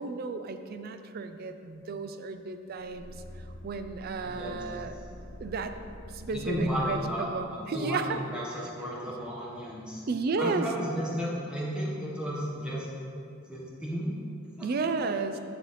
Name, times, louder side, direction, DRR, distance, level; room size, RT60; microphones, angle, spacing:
voice 1, 0.0-3.1 3.6-4.9 5.4-5.8 6.1-8.2 10.1-10.7 14.6-15.4, right 4 dB, 45° right, 9 dB, 0.3 m, -33 dB
sound 1, 2.8-7.7, left 1 dB, 55° left, 0.7 m, -46 dB
voice 2, 4.2-4.6 6.3-7.3 7.5-10.0 10.4-12.9 13.5-14.1 14.6-14.7, equal, 5° right, -6 dB, 1.2 m, -33 dB
7.2 x 6.5 x 3.2 m, 2.5 s
head